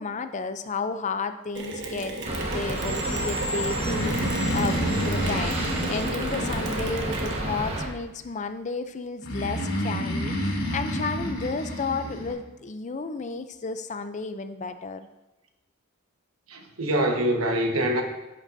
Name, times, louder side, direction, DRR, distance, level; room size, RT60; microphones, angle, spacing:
voice 1, 0.0-5.6 5.9-15.1, left 4 dB, 35° left, 10 dB, 0.5 m, -32 dB
Mechanisms, 1.5-7.8, right 2 dB, 60° right, 1.1 m, -35 dB
sound 1, 2.2-7.9, right 1 dB, 30° right, 1.3 m, -30 dB
Breathing, 3.7-7.4 9.2-12.3, equal, 80° left, 2.7 m, -30 dB
voice 2, 16.5-18.0, right 1 dB, 85° right, 3 dB, 1.3 m, -24 dB
10.5 x 8.7 x 2.7 m, 1.0 s
head